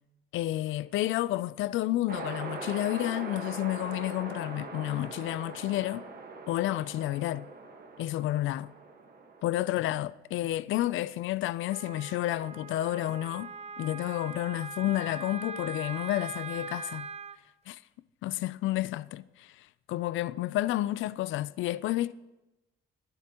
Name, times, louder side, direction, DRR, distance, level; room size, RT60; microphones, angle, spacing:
voice 1, 0.3-6.1 6.5-7.5 8.0-8.7 9.4-13.5 13.8-17.1 17.7-17.8 18.2-22.1, left 15 dB, 80° left, 0.4 m, -30 dB
sound 1, 2.1-9.4, right 4 dB, 50° right, 1.5 m, -42 dB
Wind instrument woodwind instrument, 11.7-17.4, right 4 dB, 35° right, 0.5 m, -41 dB
20.0 x 9.6 x 3.0 m
cardioid pair, 90°, 20 cm